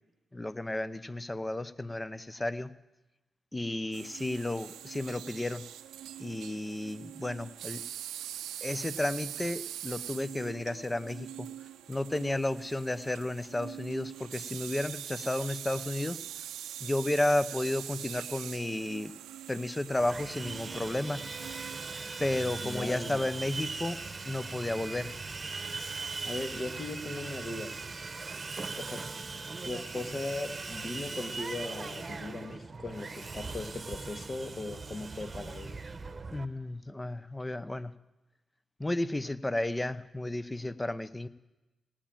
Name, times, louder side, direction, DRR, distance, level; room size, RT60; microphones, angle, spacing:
voice 1, 0.3-2.7 3.5-5.6 6.2-7.8 8.6-11.5 11.9-16.2 16.8-19.1 19.5-21.3 22.2-24.0 24.3-25.1 36.3-37.9 38.8-41.3, left 1 dB, 20° left, 16 dB, 0.8 m, -32 dB
sound 1, 3.9-22.0, right 11 dB, 90° right, 0.5 m, -43 dB
Sawing, 20.0-36.4, right 4 dB, 40° right, 1.0 m, -40 dB
voice 2, 22.6-23.2 26.2-27.8 28.7-29.1 29.6-35.8, left 2 dB, 40° left, 7 dB, 1.9 m, -38 dB
17.5 x 8.8 x 9.0 m, 1.0 s
supercardioid pair, 55°, 0 cm